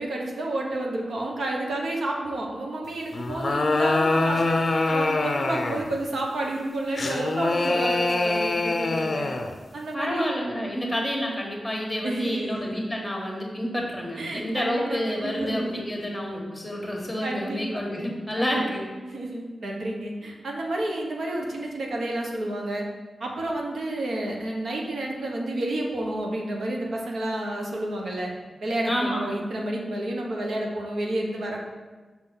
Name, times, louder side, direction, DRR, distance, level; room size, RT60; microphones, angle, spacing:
voice 1, 0.0-4.6 4.9-9.3 9.7-10.3 12.0-12.9 14.2-15.8 17.2-17.8 18.4-18.6 19.0-22.9 23.2-28.3 28.6-31.6, right 1 dB, 70° right, 0 dB, 1.1 m, -30 dB
sound 1, 3.1-5.9 7.0-9.6, left 2 dB, 35° left, 0.5 m, -24 dB
voice 2, 9.9-18.8 28.8-29.3, equal, 5° left, -1 dB, 1.4 m, -29 dB
6.0 x 5.9 x 3.9 m, 1.3 s
wide cardioid pair, 140°, 0 cm